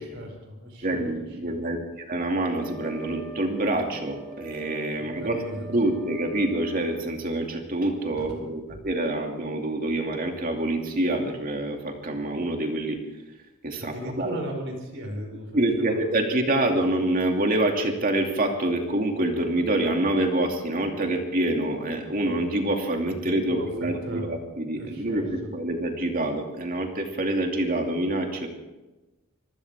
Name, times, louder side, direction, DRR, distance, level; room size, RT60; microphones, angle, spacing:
voice 1, 0.0-1.0 1.3-1.5 5.2-5.7 8.2-8.3 13.8-16.0 23.2-24.2 24.8-25.5, equal, 60° right, 2 dB, 5.0 m, -37 dB
voice 2, 0.8-13.0 13.6-14.4 15.5-28.5, right 1 dB, 40° right, 2 dB, 2.6 m, -26 dB
Wind instrument woodwind instrument, 2.6-7.0, right 6 dB, 25° left, 4.3 m, -44 dB
25.5 x 15.0 x 3.7 m, 1.1 s
head